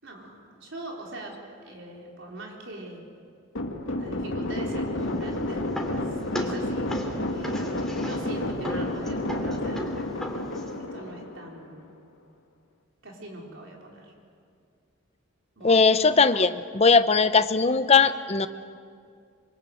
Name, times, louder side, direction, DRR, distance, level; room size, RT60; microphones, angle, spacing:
voice 1, 0.0-3.1 4.0-5.7 6.0-9.9 10.4-10.6 10.9-11.9 13.0-14.1 15.6-15.8, right 1 dB, 70° right, -1 dB, 4.3 m, -42 dB
sound 1, 3.6-11.8, left 1 dB, 85° left, 2.2 m, -30 dB
sound 2, 5.0-10.8, equal, ahead, 2.8 m, -37 dB
voice 2, 15.6-18.5, left 4 dB, 30° left, 11 dB, 0.8 m, -19 dB
26.5 x 24.0 x 7.9 m, 2.3 s
head